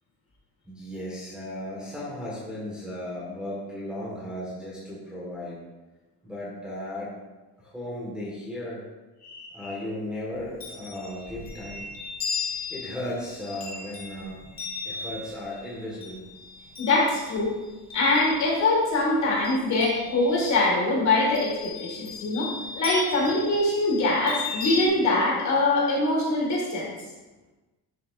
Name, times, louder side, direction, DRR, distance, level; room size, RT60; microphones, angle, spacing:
voice 1, 0.6-5.6 6.2-7.1 7.6-8.9 9.5-11.9 12.7-14.4 14.8-16.2, left 1 dB, ahead, -7 dB, 1.5 m, -35 dB
voice 2, 9.2-9.7 16.8-17.5 17.9-22.5 22.8-26.9, left 2 dB, 45° left, -4 dB, 2.9 m, -23 dB
Chime, 10.3-18.8 19.2-20.5 21.3-24.9, left 5 dB, 20° left, 1.9 m, -36 dB
12.0 x 7.1 x 2.5 m, 1.2 s
cardioid pair, 175°, 39 cm